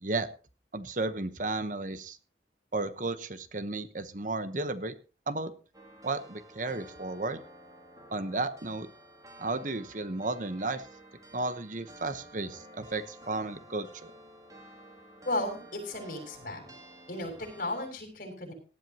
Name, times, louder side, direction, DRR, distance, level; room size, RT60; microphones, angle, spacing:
voice 1, 0.7-2.2 2.7-5.0 5.3-5.5 6.0-7.4 8.1-8.9 9.4-10.8 11.3-14.1, right 2 dB, 45° right, 11 dB, 1.0 m, -33 dB
sound 1, 5.7-17.9, right 1 dB, 20° right, 2.7 m, -52 dB
voice 2, 15.2-16.7 17.1-18.5, left 1 dB, 50° left, 4 dB, 6.6 m, -35 dB
18.5 x 12.5 x 2.9 m, 0.34 s
head